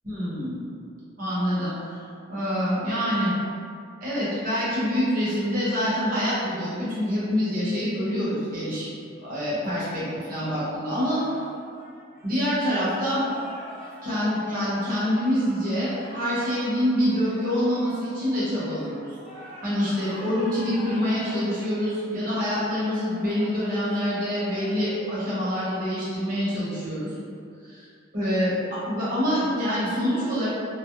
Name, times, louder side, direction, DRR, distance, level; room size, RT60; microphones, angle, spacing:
voice 1, 0.0-0.6 1.2-2.0 2.3-3.3 4.0-8.9 9.2-11.2 12.2-13.2 14.0-19.1 19.6-27.1 27.7-27.8 28.1-30.5, equal, 40° right, -10 dB, 0.9 m, -26 dB
sound 1, 10.9-25.0, equal, ahead, 0.9 m, -44 dB
2.3 x 2.0 x 2.9 m, 2.4 s
head